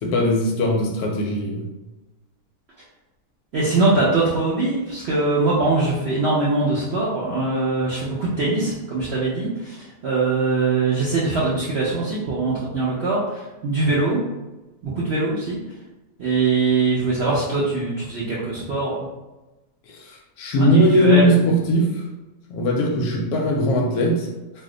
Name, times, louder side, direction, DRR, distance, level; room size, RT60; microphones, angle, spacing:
voice 1, 0.0-1.7 19.9-20.1 20.4-22.0 22.5-24.3, equal, 75° left, 0 dB, 1.0 m, -19 dB
voice 2, 3.5-14.2 14.8-15.6 16.2-19.0 20.6-21.5, right 3 dB, 65° right, -7 dB, 0.6 m, -22 dB
2.7 x 2.1 x 3.7 m, 1.1 s
omnidirectional pair, 1.7 m